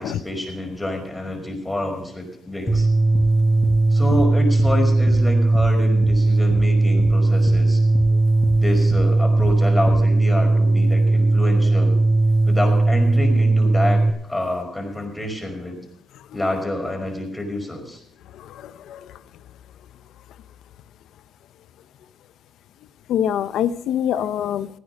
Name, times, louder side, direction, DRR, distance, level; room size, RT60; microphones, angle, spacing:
voice 1, 0.0-2.9 3.9-7.8 8.5-12.0 12.5-15.7 16.3-18.0, left 1 dB, 10° left, 2 dB, 5.0 m, -28 dB
sound 1, 2.7-2.8 3.1-3.3 3.6-3.8 4.1-4.3 4.6-4.7 5.1-5.2 5.5-5.7 6.0-6.2 6.5-6.7 7.0-7.1 7.5-7.6 7.9-8.1 8.4-8.6 8.9-9.1 9.4-9.5 9.9-10.0, left 6 dB, 45° left, 1.1 m, -30 dB
sound 2, 2.7-14.1, right 2 dB, 45° right, 2.0 m, -17 dB
voice 2, 18.3-19.2 23.1-24.7, left 10 dB, 80° left, 15 dB, 0.7 m, -25 dB
16.5 x 9.6 x 5.5 m, 0.68 s
cardioid pair, 90°, 0 cm